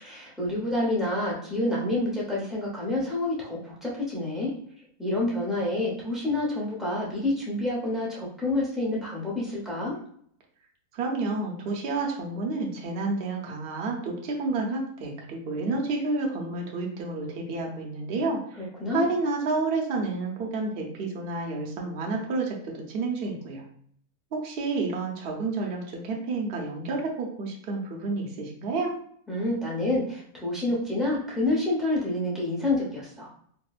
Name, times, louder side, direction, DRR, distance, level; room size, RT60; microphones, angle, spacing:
voice 1, 0.0-4.5 5.0-10.0 18.6-19.1 29.3-33.3, left 2 dB, ahead, -5 dB, 0.5 m, -28 dB
voice 2, 10.9-18.7 18.9-23.7 24.3-28.9, right 3 dB, 55° right, -1 dB, 0.7 m, -30 dB
3.6 x 2.1 x 2.4 m, 0.62 s
omnidirectional pair, 1.6 m